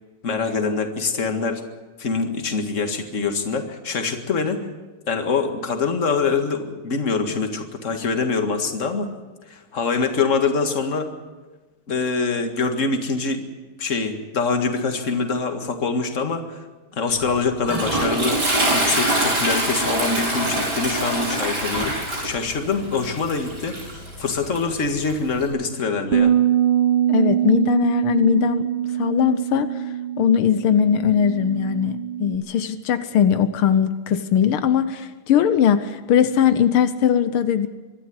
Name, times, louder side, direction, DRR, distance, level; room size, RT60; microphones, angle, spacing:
voice 1, 0.2-1.6 2.0-4.6 5.1-9.1 9.5-11.1 11.9-13.4 13.8-16.6 16.9-23.8 24.2-26.3, left 4 dB, 35° left, 6 dB, 2.1 m, -24 dB
Toilet flush, 17.1-25.5, right 1 dB, 50° right, 6.0 m, -25 dB
Bass guitar, 26.1-32.4, right 10 dB, 80° right, 1.7 m, -23 dB
voice 2, 27.1-28.7 29.0-29.7 30.2-37.7, left 8 dB, 85° left, 11 dB, 1.8 m, -20 dB
23.5 x 12.5 x 9.6 m, 1.2 s
omnidirectional pair, 2.3 m